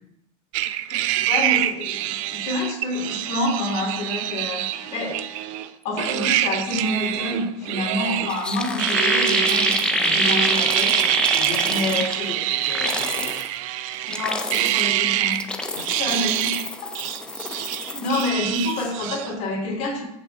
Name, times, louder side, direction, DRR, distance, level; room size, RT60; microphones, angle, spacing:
sound 1, 0.5-5.7 6.0-8.5 8.8-15.5 15.8-16.7 16.9-19.3, right 13 dB, 60° right, 0.6 m, -25 dB
voice 1, 1.3-5.2 5.8-11.1 11.7-12.3 14.1-16.5 16.8-16.9 17.4-20.0, left 2 dB, 40° left, -2 dB, 3.0 m, -28 dB
sound 2, 8.0-8.1 8.3-12.3 12.6-13.5 13.9-14.9 15.3-18.3 18.5-18.9, left 2 dB, 5° left, 0.4 m, -27 dB
voice 2, 11.3-11.9 12.2-13.3 15.8-16.2 18.0-18.1, left 5 dB, 65° left, -4 dB, 2.6 m, -37 dB
14.5 x 5.9 x 3.5 m, 0.81 s
supercardioid pair, 175°, 19 cm